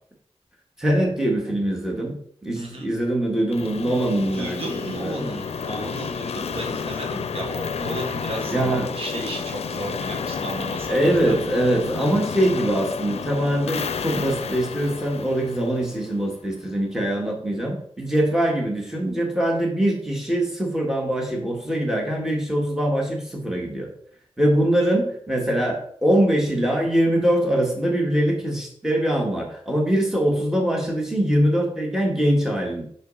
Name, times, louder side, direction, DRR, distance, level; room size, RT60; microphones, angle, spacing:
voice 1, 0.8-2.2 2.4-4.6 4.9-5.2 8.5-8.9 10.9-23.9 24.4-32.8, right 1 dB, 5° right, -1 dB, 1.8 m, -23 dB
voice 2, 2.5-2.9 3.9-11.3, right 2 dB, 65° right, 0 dB, 1.6 m, -34 dB
sound 1, 3.5-16.4, left 6 dB, 80° left, 0.5 m, -31 dB
6.7 x 6.1 x 4.1 m, 0.62 s
wide cardioid pair, 125°, 10 cm